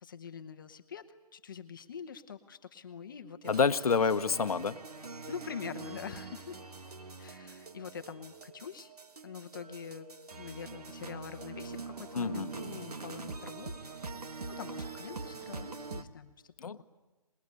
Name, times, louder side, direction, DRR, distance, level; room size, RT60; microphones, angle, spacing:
voice 1, 0.0-3.5 5.3-6.6 7.2-8.9 9.2-10.1 10.4-14.0 14.6-16.5, left 7 dB, 35° left, 7 dB, 1.0 m, -45 dB
sound 1, 3.4-16.0, right 4 dB, 90° right, 1.6 m, -44 dB
voice 2, 3.5-4.8 12.1-12.5 16.6-16.8, left 5 dB, 75° left, 11 dB, 1.0 m, -28 dB
24.5 x 21.0 x 9.6 m, 1.2 s
hypercardioid pair, 170°, 19 cm